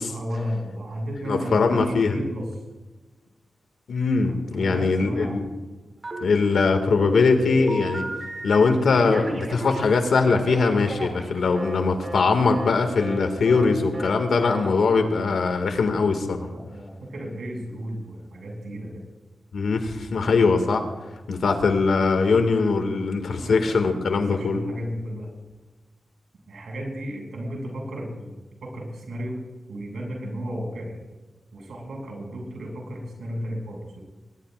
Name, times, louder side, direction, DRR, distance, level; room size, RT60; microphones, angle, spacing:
voice 1, 0.1-2.4 4.5-5.4 16.5-18.9 23.4-23.7 24.1-25.3 26.5-28.4 28.6-29.4 29.7-31.0 31.5-34.0, equal, 85° right, -1 dB, 6.7 m, -33 dB
voice 2, 1.3-2.2 3.9-5.5 6.2-8.1 8.4-16.5 19.5-20.9 21.3-24.6, left 4 dB, 80° left, 5 dB, 2.2 m, -21 dB
Telephone, 6.0-6.6 7.0-8.6 9.0-11.8 12.0-12.3 12.5-12.7 13.0-13.2 13.5-13.7 13.9-14.2 14.4-14.6, right 1 dB, 30° right, 2.9 m, -34 dB
22.0 x 20.5 x 2.6 m, 1.2 s
wide cardioid pair, 160°, 0 cm